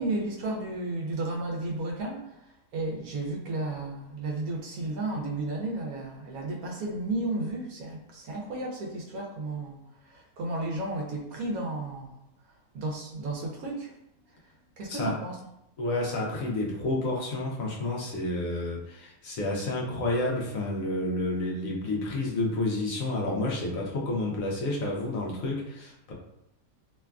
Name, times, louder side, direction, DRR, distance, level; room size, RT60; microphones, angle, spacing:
voice 1, 0.0-2.4 2.7-12.1 12.7-14.0 14.8-15.4, right 2 dB, 80° right, -1 dB, 1.1 m, -33 dB
voice 2, 15.8-26.1, left 2 dB, 70° left, -2 dB, 1.0 m, -30 dB
3.0 x 2.3 x 2.2 m, 0.83 s
omnidirectional pair, 1.6 m